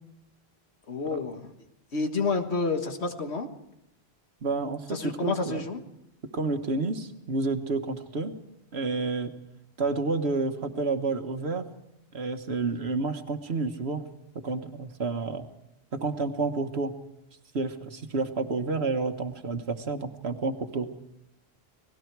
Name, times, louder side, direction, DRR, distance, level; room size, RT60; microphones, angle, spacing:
voice 1, 0.9-1.5 1.9-3.5 4.9-5.8, left 4 dB, 80° left, 6 dB, 1.9 m, -29 dB
voice 2, 4.4-5.6 6.3-8.3 8.7-9.3 9.8-11.7 12.1-14.0 14.4-15.4 15.9-16.9 17.5-20.9, right 3 dB, 75° right, 7 dB, 1.6 m, -30 dB
29.5 x 19.0 x 4.7 m, 0.84 s
omnidirectional pair, 1.1 m